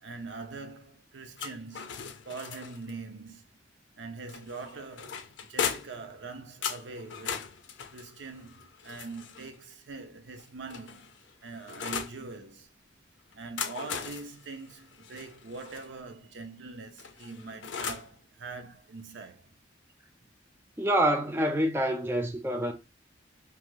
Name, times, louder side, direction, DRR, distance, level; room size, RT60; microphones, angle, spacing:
voice 1, 0.0-3.4 4.0-7.6 7.9-11.1 11.4-12.7 13.3-19.5, right 3 dB, 75° right, 0.5 m, -43 dB
sound 1, 1.4-2.9 4.3-6.1 6.6-9.5 10.4-12.2 13.3-15.9 17.0-18.1, left 7 dB, 75° left, 0.5 m, -38 dB
voice 2, 20.8-22.7, right 1 dB, 10° right, 0.4 m, -26 dB
2.6 x 2.4 x 2.9 m
head